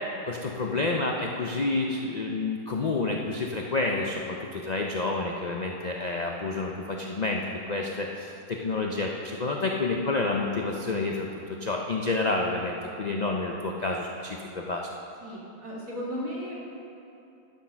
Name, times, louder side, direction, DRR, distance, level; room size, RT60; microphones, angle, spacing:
voice 1, 0.3-14.9, left 3 dB, 75° left, 0 dB, 0.3 m, -29 dB
voice 2, 15.2-16.6, equal, 55° right, -5 dB, 2.5 m, -35 dB
11.5 x 6.5 x 5.7 m, 2.7 s
omnidirectional pair, 1.7 m